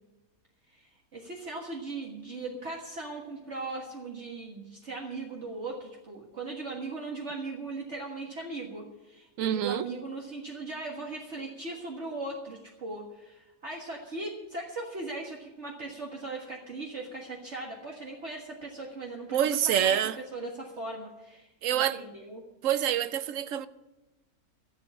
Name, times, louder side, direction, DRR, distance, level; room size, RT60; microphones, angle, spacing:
voice 1, 0.7-20.0 20.3-22.4, right 3 dB, 50° right, 1.9 m, -39 dB
voice 2, 9.4-9.9 19.3-20.2 21.6-22.0 22.6-23.7, right 10 dB, 70° right, 0.9 m, -26 dB
14.0 x 7.8 x 8.5 m
omnidirectional pair, 1.6 m